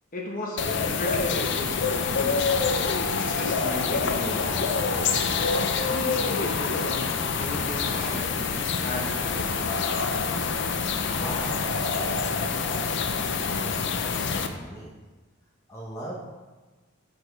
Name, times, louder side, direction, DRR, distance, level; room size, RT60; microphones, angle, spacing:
voice 1, 0.1-2.6 3.2-4.6 5.5-7.1 7.4-8.3 8.8-9.6, left 1 dB, 40° left, -1 dB, 1.1 m, -35 dB
sound 1, 0.6-14.5, left 5 dB, 55° left, 0.5 m, -26 dB
sound 2, 0.8-12.2, right 1 dB, 40° right, 1.6 m, -41 dB
voice 2, 11.2-11.7 12.0-14.9 15.7-16.2, right 1 dB, 15° left, -5 dB, 1.0 m, -39 dB
10.5 x 4.6 x 3.3 m, 1.3 s
head